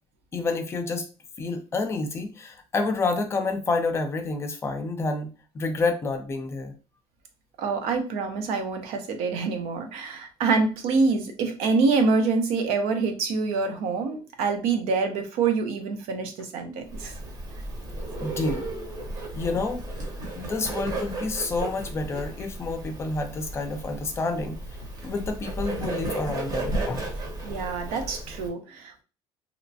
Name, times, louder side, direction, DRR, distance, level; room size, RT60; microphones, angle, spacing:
voice 1, 0.3-1.1 1.4-5.3 5.5-6.7 18.2-18.7 19.4-19.8 20.3-24.6 25.0-27.1, left 3 dB, 25° left, 6 dB, 0.5 m, -29 dB
voice 2, 7.6-17.2 27.4-29.0, right 4 dB, 80° right, 6 dB, 0.7 m, -26 dB
Bird, 16.9-28.5, right 2 dB, 35° right, 0.8 m, -34 dB
2.9 x 2.1 x 2.6 m, 0.33 s
cardioid pair, 145°, 10 cm